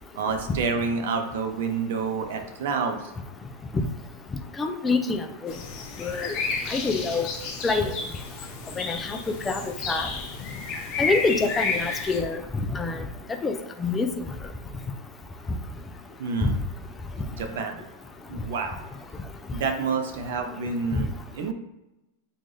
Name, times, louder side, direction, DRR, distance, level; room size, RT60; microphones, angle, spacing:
voice 1, 0.2-3.0 16.2-16.6 17.3-17.8 18.3-18.8 19.5-21.5, right 5 dB, 70° right, 6 dB, 0.6 m, -28 dB
voice 2, 4.6-5.5 6.0-6.3 6.7-7.3 7.6-7.9 8.8-9.2 9.5-9.6 9.9-10.1 11.0-12.4 12.7-13.0 13.4-14.1 20.9-21.0, left 4 dB, 15° left, 6 dB, 0.3 m, -26 dB
sound 1, 5.5-12.2, left 4 dB, 40° left, 0.8 m, -31 dB
3.3 x 2.5 x 3.8 m, 0.96 s
supercardioid pair, 145°, 0 cm